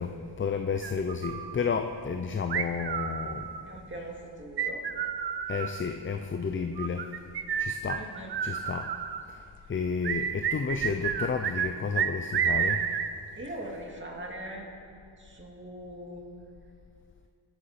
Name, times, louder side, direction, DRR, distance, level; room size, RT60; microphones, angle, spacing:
voice 1, 0.0-3.5 5.5-7.1 7.6-8.1 8.4-8.9 9.3-12.9, left 5 dB, 30° left, 6 dB, 0.4 m, -32 dB
sound 1, 0.8-1.6 2.5-3.7 4.6-5.8 6.8-9.2 10.0-11.7 11.9-13.1, right 8 dB, 65° right, 0.7 m, -30 dB
voice 2, 3.7-4.8 8.0-8.3 13.3-14.6 15.2-16.3, right 1 dB, 25° right, -1 dB, 2.1 m, -41 dB
22.0 x 8.0 x 4.2 m, 2.5 s
wide cardioid pair, 105°, 44 cm